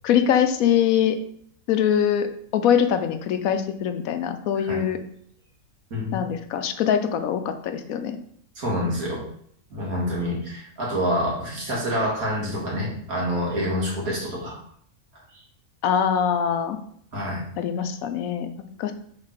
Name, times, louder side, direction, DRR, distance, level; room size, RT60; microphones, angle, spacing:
voice 1, 0.0-1.2 1.7-5.0 6.1-8.2 15.8-16.8 17.6-18.5 18.8-18.9, left 8 dB, 80° left, 8 dB, 1.1 m, -23 dB
voice 2, 5.9-6.3 8.6-9.2 9.7-14.6 17.1-17.4, equal, 85° right, -3 dB, 2.3 m, -27 dB
5.2 x 3.9 x 5.7 m, 0.64 s
omnidirectional pair, 1.5 m